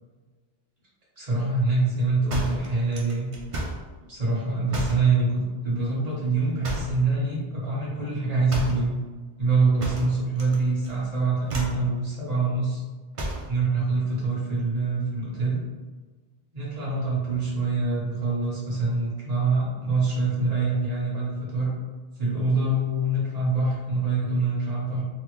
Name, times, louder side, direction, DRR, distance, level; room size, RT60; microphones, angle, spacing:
voice 1, 1.2-3.3 4.1-9.0 9.4-12.8 13.5-15.6 16.5-21.7 22.2-25.0, right 3 dB, 35° right, -7 dB, 1.0 m, -25 dB
sound 1, 2.3-3.9 4.7-5.1 6.6-7.1 8.5-8.9 9.8-10.6 10.8-11.1 11.5-11.8 13.1-13.5, right 1 dB, 55° right, 0.3 m, -32 dB
3.4 x 2.0 x 2.9 m, 1.3 s
omnidirectional pair, 1.1 m